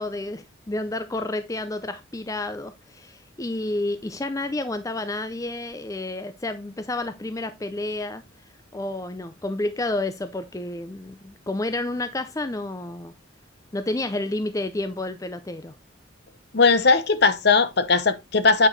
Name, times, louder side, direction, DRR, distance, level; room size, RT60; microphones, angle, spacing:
voice 1, 0.0-8.2 8.7-13.1 13.7-15.7, left 2 dB, 15° left, 0.5 m, -30 dB
voice 2, 16.5-18.7, left 4 dB, 55° left, 0.9 m, -18 dB
8.9 x 4.7 x 3.8 m
head